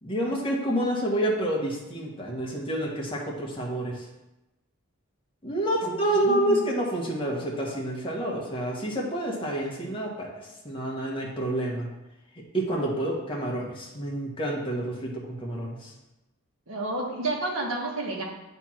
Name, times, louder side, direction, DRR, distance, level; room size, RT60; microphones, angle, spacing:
voice 1, 0.0-4.0 5.4-11.9 12.5-15.9, right 1 dB, 25° left, -3 dB, 1.4 m, -28 dB
voice 2, 5.8-6.6 16.7-18.2, right 1 dB, 60° right, -2 dB, 1.6 m, -31 dB
8.9 x 3.5 x 4.4 m, 0.97 s
head